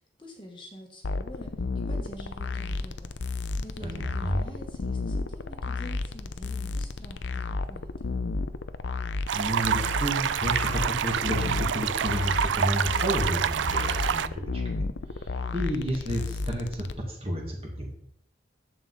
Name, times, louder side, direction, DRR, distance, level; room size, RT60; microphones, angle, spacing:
voice 1, 0.2-1.5 1.9-3.1 3.6-8.2, equal, 25° left, 0 dB, 1.4 m, -46 dB
sound 1, 1.0-16.9, left 3 dB, 85° left, 0.6 m, -32 dB
voice 2, 3.8-4.4 9.3-14.8 15.2-17.9, equal, 30° right, -1 dB, 2.1 m, -31 dB
sound 2, 9.3-14.3, right 8 dB, 85° right, 0.4 m, -27 dB
11.0 x 7.6 x 4.1 m, 0.70 s
head